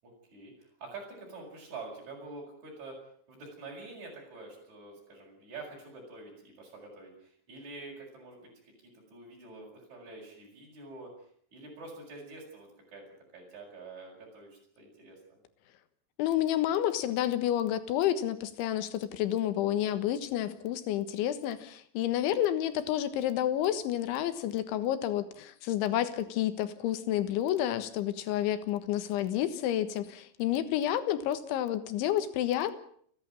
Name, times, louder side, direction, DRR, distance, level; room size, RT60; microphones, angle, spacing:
voice 1, 0.0-3.0 3.3-8.5 8.8-11.1 11.5-13.1 13.3-15.4, right 3 dB, 35° right, -3 dB, 7.7 m, -47 dB
voice 2, 16.2-32.8, left 12 dB, 80° left, 12 dB, 3.7 m, -30 dB
30.0 x 11.5 x 9.0 m, 0.62 s
omnidirectional pair, 5.5 m